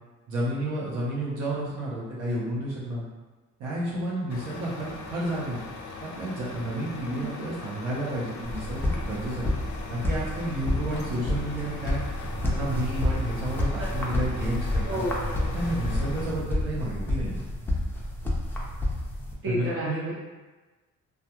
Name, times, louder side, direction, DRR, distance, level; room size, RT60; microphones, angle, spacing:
voice 1, 0.3-3.0 3.6-5.6 6.0-9.5 9.9-12.0 12.4-15.0 15.4-17.4 19.4-20.1, right 1 dB, 90° right, -6 dB, 0.8 m, -31 dB
Truck, 4.3-16.3, left 3 dB, 80° left, 0.5 m, -41 dB
sound 1, 8.4-19.3, left 1 dB, 5° left, 0.5 m, -29 dB
voice 2, 14.9-15.4 19.4-20.1, equal, 45° right, -5 dB, 0.9 m, -31 dB
2.3 x 2.3 x 2.9 m, 1.2 s
cardioid pair, 90°, 30 cm